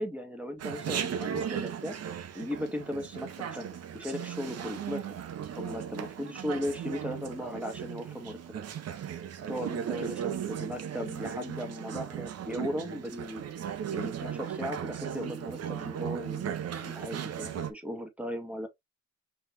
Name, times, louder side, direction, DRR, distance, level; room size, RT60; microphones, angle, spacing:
voice 1, 0.0-1.9 2.3-5.2 5.5-8.6 9.5-13.4 13.9-16.5 16.8-18.7, equal, 5° right, 1.6 m, -37 dB
Chatter, 0.6-17.7, right 8 dB, 55° right, 0.9 m, -37 dB
5.4 x 3.3 x 2.6 m
cardioid pair, 90°, 30 cm